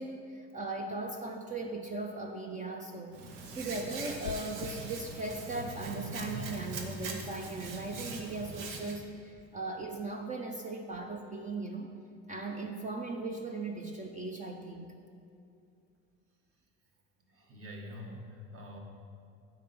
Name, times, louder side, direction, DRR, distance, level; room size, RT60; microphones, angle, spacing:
voice 1, 0.0-3.2 3.5-11.9 12.3-14.9, right 2 dB, 25° right, 2 dB, 0.7 m, -38 dB
Hands, 3.1-8.9, right 3 dB, 70° right, 1.3 m, -41 dB
sound 1, 4.2-4.7, left 11 dB, 70° left, 0.5 m, -41 dB
voice 2, 17.3-18.8, left 1 dB, 45° right, -1 dB, 1.9 m, -45 dB
9.1 x 4.6 x 6.9 m, 2.5 s
supercardioid pair, 85°, 33 cm